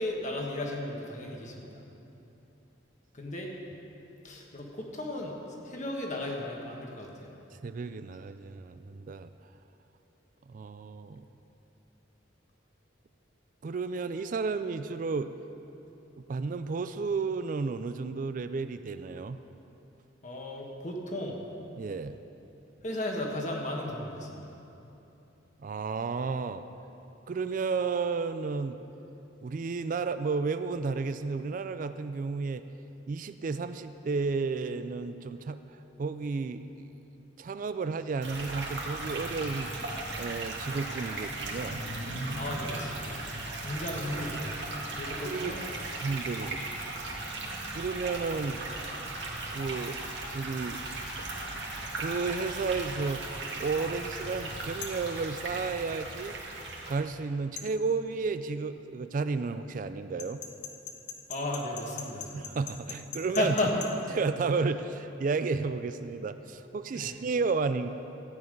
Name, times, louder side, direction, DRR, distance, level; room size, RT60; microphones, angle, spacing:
voice 1, 0.0-1.7 3.1-3.5 4.2-5.3 5.6-7.3 20.2-21.4 22.8-24.4 42.4-43.2 43.6-44.5 45.0-45.6 46.4-46.5 61.3-62.3 63.3-63.8 66.9-67.1, left 1 dB, 40° left, 0 dB, 1.5 m, -34 dB
voice 2, 7.6-9.3 10.5-11.2 13.6-15.3 16.2-19.4 21.7-22.2 25.6-26.6 27.3-28.8 29.4-32.6 33.1-35.6 36.0-36.7 37.4-39.7 40.2-41.8 43.9-44.4 45.2-45.6 46.0-46.7 47.7-48.6 49.5-50.1 50.3-50.9 51.2-51.3 52.0-53.2 53.6-56.4 56.9-60.4 62.3-63.5 64.1-67.9, right 4 dB, 45° right, 11 dB, 0.3 m, -32 dB
sound 1, 38.2-57.0, right 2 dB, 65° right, 1.9 m, -37 dB
sound 2, 54.8-55.1 57.6-57.7 60.2-63.9, left 7 dB, 60° left, 1.0 m, -40 dB
14.0 x 9.4 x 5.3 m, 2.9 s
head